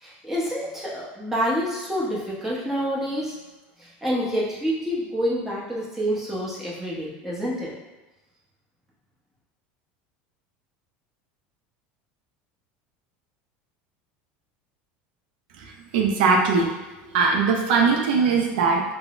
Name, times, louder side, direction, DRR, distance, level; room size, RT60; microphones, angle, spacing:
voice 1, 0.0-3.4 3.8-7.7, equal, 5° right, -6 dB, 0.8 m, -27 dB
voice 2, 15.9-16.7 17.1-18.8, right 4 dB, 80° right, 1 dB, 0.5 m, -20 dB
3.7 x 2.0 x 2.4 m, 1.1 s
supercardioid pair, 130°, 5 cm